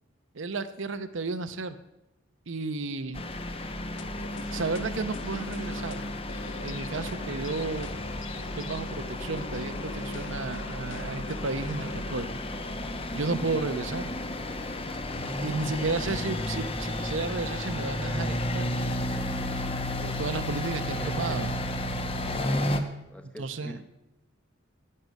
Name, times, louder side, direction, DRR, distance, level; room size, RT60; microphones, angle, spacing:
voice 1, 0.3-1.8 2.5-3.2 4.5-6.0 6.6-7.9 8.3-12.3 13.1-14.1 15.4-18.7 20.0-21.5 23.4-23.8, right 3 dB, 75° right, 10 dB, 0.8 m, -33 dB
sound 1, 3.1-22.8, left 1 dB, 30° left, 1.0 m, -32 dB
sound 2, 4.0-12.2, left 4 dB, 70° left, 0.8 m, -44 dB
voice 2, 20.8-21.6 23.1-23.8, equal, 5° left, 6 dB, 1.0 m, -45 dB
11.0 x 7.7 x 9.2 m, 0.91 s
head